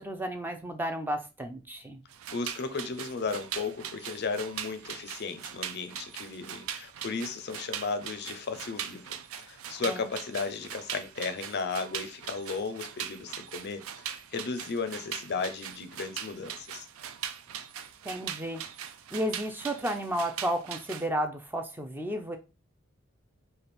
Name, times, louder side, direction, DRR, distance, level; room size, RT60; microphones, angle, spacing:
voice 1, 0.0-2.0 9.9-10.1 18.0-18.6 19.1-22.4, right 1 dB, 10° right, 0.4 m, -32 dB
sound 1, 2.1-21.1, right 9 dB, 90° right, 0.4 m, -41 dB
voice 2, 2.3-16.9, left 4 dB, 55° left, 0.4 m, -35 dB
3.3 x 2.4 x 4.1 m
head